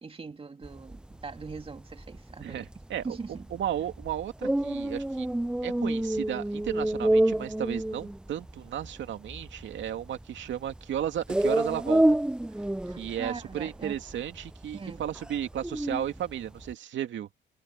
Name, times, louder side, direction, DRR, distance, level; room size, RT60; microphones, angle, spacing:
voice 1, 0.0-2.7 3.0-3.5 12.9-14.0 14.7-15.1, right 4 dB, 30° right, 2.2 m, -41 dB
sound 1, 0.6-16.7, right 1 dB, 5° right, 0.3 m, -29 dB
voice 2, 2.4-5.3 5.6-12.2 13.0-17.3, right 10 dB, 70° right, 2.4 m, -34 dB
cardioid pair, 90°, 20 cm